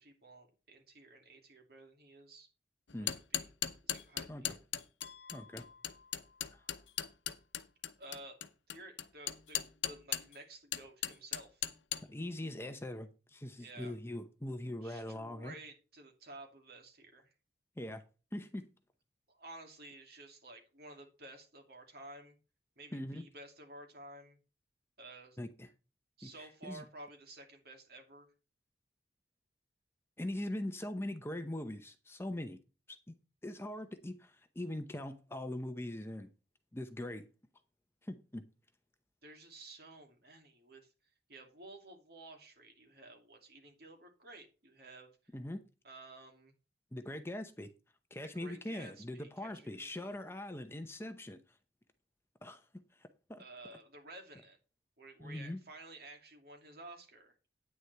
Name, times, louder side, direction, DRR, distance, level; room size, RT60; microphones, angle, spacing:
voice 1, 0.0-2.5 3.0-3.5 3.8-4.5 8.0-8.4 8.7-11.6 13.6-14.0 14.8-17.3 19.3-22.4 22.8-24.4 25.0-25.4 26.2-28.3 39.2-40.9 41.3-45.2 45.8-46.5 48.2-50.2 53.4-54.6 55.0-57.3, right 2 dB, 55° right, 2.6 m, -53 dB
hammering pieces of iron, 2.9-10.4 10.7-12.0, left 11 dB, 85° left, 0.8 m, -37 dB
sound 1, 5.0-7.1, left 6 dB, 60° left, 1.2 m, -58 dB
voice 2, 5.3-5.6 6.5-6.6 12.1-15.5 17.8-18.0 18.3-18.7 22.9-23.2 25.4-25.7 26.2-26.8 30.2-32.6 32.9-33.1 33.4-36.3 36.7-37.3 38.0-38.5 45.3-45.6 46.9-47.7 48.1-51.4 52.4-52.7 52.9-53.4 55.2-55.6, left 1 dB, 15° left, 0.7 m, -42 dB
9.5 x 9.4 x 3.4 m
head